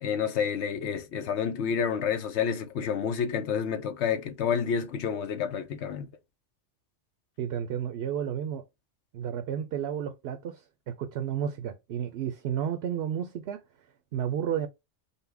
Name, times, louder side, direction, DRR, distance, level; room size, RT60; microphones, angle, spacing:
voice 1, 0.0-6.1, left 7 dB, 75° left, 0.9 m, -29 dB
voice 2, 7.4-8.6 9.1-13.6 14.1-14.7, right 9 dB, 70° right, 0.8 m, -32 dB
5.5 x 2.1 x 3.4 m
omnidirectional pair, 1.2 m